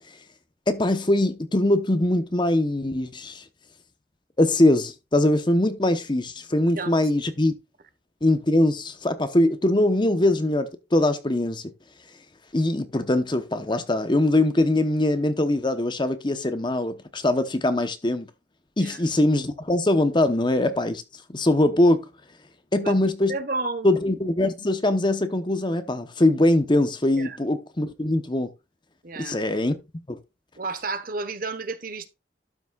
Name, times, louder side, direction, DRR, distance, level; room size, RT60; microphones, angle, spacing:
voice 1, 0.7-3.4 4.4-7.5 8.2-11.6 12.5-18.3 18.8-21.0 21.3-22.0 22.7-23.4 23.8-28.5 29.2-29.7 30.1-30.2, left 1 dB, 25° left, 0.8 m, -22 dB
voice 2, 6.5-7.0 18.8-19.0 22.8-22.9 23.3-23.9 27.2-27.4 29.0-29.4 30.6-32.1, right 3 dB, 50° right, 1.1 m, -31 dB
12.0 x 6.0 x 2.3 m
head